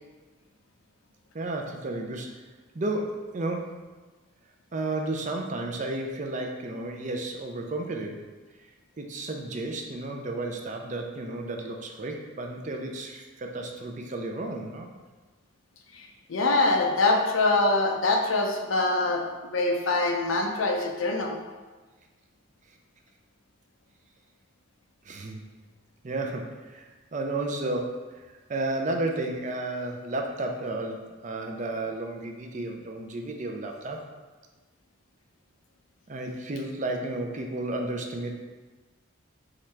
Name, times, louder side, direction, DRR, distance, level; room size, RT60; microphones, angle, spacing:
voice 1, 1.3-2.4 2.7-3.7 4.7-8.2 9.0-14.9 25.0-25.4 26.0-34.1 36.1-38.3, right 2 dB, 40° right, 2 dB, 0.5 m, -32 dB
voice 2, 15.9-21.4, left 2 dB, 80° left, 3 dB, 0.6 m, -24 dB
3.7 x 3.2 x 4.4 m, 1.3 s
head